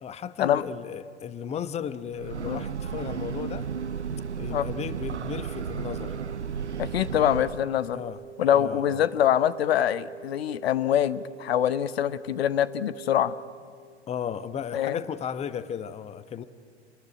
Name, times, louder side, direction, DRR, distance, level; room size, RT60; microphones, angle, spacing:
voice 1, 0.0-3.7 4.3-6.2 7.9-8.2 8.5-9.0 14.1-16.4, left 8 dB, 20° left, 14 dB, 1.0 m, -35 dB
Breathing / Train, 2.0-7.8, right 7 dB, 85° right, 0.8 m, -34 dB
sound 1, 3.3-13.3, right 7 dB, 45° right, 2.6 m, -46 dB
voice 2, 6.8-8.0 8.4-13.3 14.7-15.0, left 10 dB, 60° left, 15 dB, 1.0 m, -24 dB
28.5 x 19.5 x 9.9 m, 2.1 s
figure-of-eight pair, 90°, 34 cm